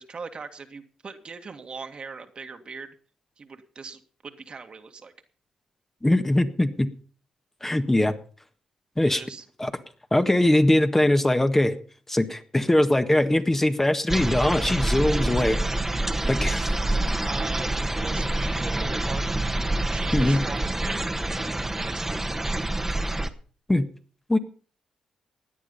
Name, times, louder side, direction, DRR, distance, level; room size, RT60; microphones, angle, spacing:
voice 1, 0.0-3.0 3.4-5.1 9.1-9.5 17.2-19.4 19.9-21.5 21.8-22.6, right 5 dB, 45° right, 6 dB, 2.0 m, -40 dB
voice 2, 6.0-6.9 7.6-8.1 9.0-9.2 9.6-9.7 10.1-11.7 12.1-15.6 16.3-16.7 20.1-20.4 23.7-23.9 24.3-24.4, left 1 dB, 15° left, 7 dB, 1.6 m, -21 dB
sound 1, 14.1-23.3, right 1 dB, 15° right, 1.5 m, -27 dB
17.0 x 9.9 x 5.5 m, 0.41 s
supercardioid pair, 50°, 2 cm